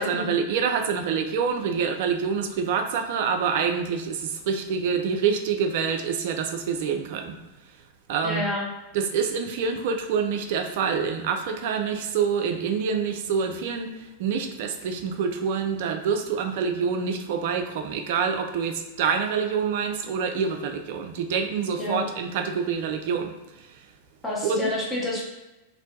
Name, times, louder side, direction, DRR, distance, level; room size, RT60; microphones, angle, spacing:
voice 1, 0.0-7.4 8.1-8.5 8.9-23.8 24.4-24.7, right 6 dB, 50° right, 5 dB, 0.3 m, -26 dB
voice 2, 8.2-8.7 21.8-22.0 24.2-25.3, left 1 dB, 10° left, -4 dB, 0.8 m, -28 dB
2.6 x 2.1 x 2.6 m, 1.0 s
figure-of-eight pair, 90°, 0 cm